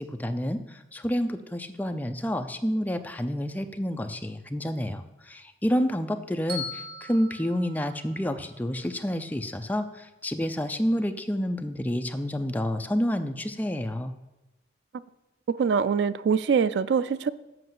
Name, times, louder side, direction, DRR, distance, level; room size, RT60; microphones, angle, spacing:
voice 1, 0.0-14.1, equal, 10° left, 7 dB, 0.4 m, -29 dB
Bell, 6.5-8.7, left 2 dB, 65° right, 2.1 m, -40 dB
voice 2, 15.5-17.3, right 6 dB, 80° right, 16 dB, 0.4 m, -24 dB
7.8 x 5.4 x 7.5 m, 1.0 s
head